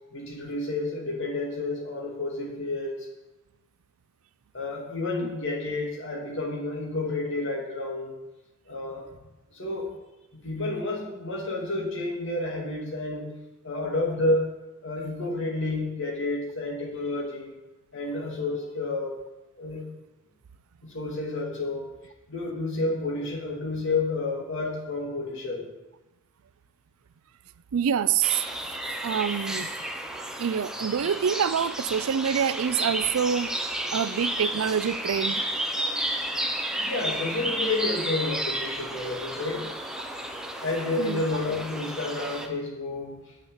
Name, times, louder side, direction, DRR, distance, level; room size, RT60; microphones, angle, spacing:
voice 1, 0.1-3.1 4.5-8.1 8.7-9.0 9.5-9.9 10.3-13.3 13.6-14.5 14.8-17.6 17.9-19.2 19.6-19.8 20.8-21.9 22.3-25.7 36.8-39.7 40.6-43.3, left 2 dB, 60° left, -1 dB, 2.5 m, -30 dB
voice 2, 27.7-28.4 29.0-29.7 30.2-33.5 33.9-35.4 41.0-41.2, right 8 dB, 85° right, 16 dB, 0.4 m, -26 dB
sound 1, 28.2-42.5, right 1 dB, 5° right, 0.7 m, -32 dB
7.9 x 6.6 x 7.3 m, 1.0 s
head